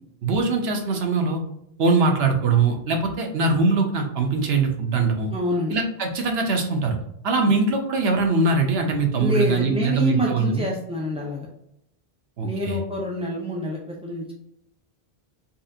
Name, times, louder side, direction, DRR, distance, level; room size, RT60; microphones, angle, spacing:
voice 1, 0.2-1.4 1.8-5.3 5.7-7.0 7.2-10.6 12.4-12.8, right 3 dB, 75° right, 3 dB, 1.0 m, -22 dB
voice 2, 5.3-5.8 9.2-11.5 12.4-14.3, equal, 10° right, -4 dB, 0.3 m, -26 dB
4.1 x 2.4 x 2.7 m, 0.78 s
omnidirectional pair, 1.0 m